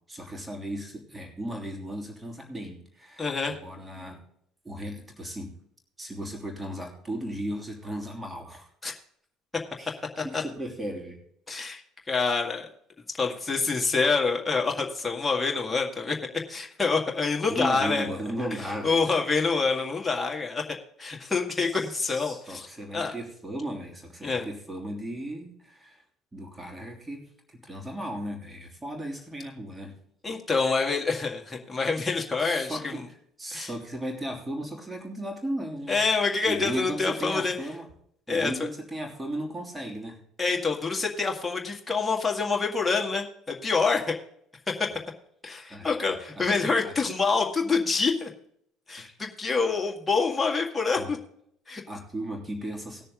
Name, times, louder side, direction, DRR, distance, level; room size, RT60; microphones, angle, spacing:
voice 1, 0.1-4.2 4.6-5.5 6.0-8.7 9.8-10.0 10.2-11.2 17.4-19.0 21.6-26.0 26.3-30.0 32.4-36.0 36.4-37.9 38.3-40.2 45.7-46.5 46.8-46.9 49.0-49.1 51.0-51.1 51.9-53.0, right 1 dB, 15° right, 1 dB, 2.9 m, -36 dB
voice 2, 3.2-3.5 8.8-8.9 10.3-10.4 11.5-11.8 12.1-12.7 13.2-16.2 16.5-18.1 18.8-20.6 21.0-22.7 22.9-23.1 24.2-24.5 30.2-33.1 33.5-33.7 35.9-37.5 38.3-38.5 40.4-44.2 44.7-44.9 45.4-48.3 48.9-51.2 51.7-51.8, left 4 dB, 15° left, 1 dB, 2.0 m, -26 dB
18.5 x 6.7 x 3.8 m, 0.70 s
figure-of-eight pair, 55°, 0 cm